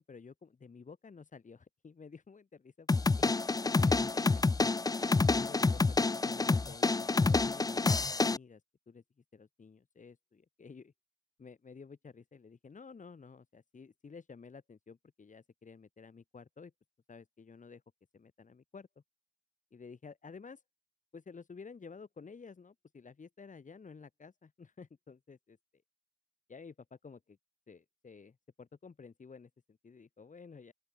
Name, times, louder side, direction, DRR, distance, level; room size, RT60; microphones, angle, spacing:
voice 1, 0.0-3.3 3.8-4.4 4.9-8.6 8.9-9.0 9.3-10.9 11.4-16.7 17.1-17.8 18.1-18.9 19.7-20.6 21.1-25.6 26.5-27.4 27.7-30.7, left 5 dB, 50° left, 2.5 m, -52 dB
sound 1, 2.9-8.4, left 3 dB, 25° left, 0.5 m, -28 dB
open air
wide cardioid pair, 115°, 16 cm